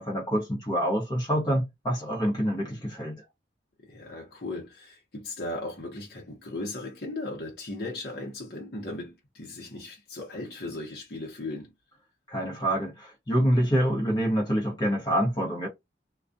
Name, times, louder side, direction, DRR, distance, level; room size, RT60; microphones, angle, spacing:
voice 1, 0.0-3.2 12.3-15.7, equal, 25° left, 1.1 m, -26 dB
voice 2, 3.8-11.7, left 2 dB, 60° left, 0.9 m, -37 dB
2.3 x 2.3 x 2.6 m
head